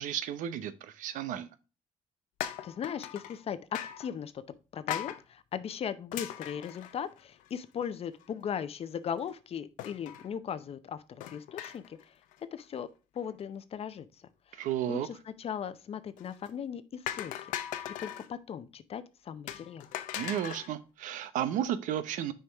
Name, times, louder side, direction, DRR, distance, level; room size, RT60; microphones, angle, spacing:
voice 1, 0.0-1.5 14.5-15.1 20.1-22.3, right 10 dB, 80° right, 0.7 m, -33 dB
sound 1, 2.4-3.4 3.7-4.1 4.9-5.2 6.1-7.5 7.8-7.9 8.2-8.3 9.8-10.3 11.2-12.0 12.3-12.6 16.2-16.5 17.1-18.3 19.5-20.7, left 11 dB, 85° left, 0.6 m, -39 dB
voice 2, 2.6-4.4 4.7-12.1 12.4-12.9 13.1-14.1 14.5-14.6 14.9-17.3 18.0-19.9, left 8 dB, 50° left, 0.7 m, -38 dB
6.4 x 4.6 x 3.4 m
cardioid pair, 90°, 13 cm